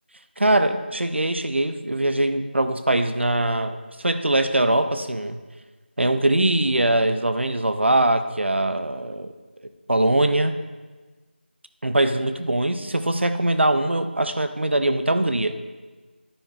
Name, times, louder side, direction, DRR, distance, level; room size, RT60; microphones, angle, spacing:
voice 1, 0.4-3.8 4.0-5.4 6.0-9.3 9.9-10.5 11.8-15.5, right 1 dB, 80° right, 9 dB, 0.7 m, -22 dB
10.0 x 9.8 x 2.4 m, 1.3 s
figure-of-eight pair, 175°, 6 cm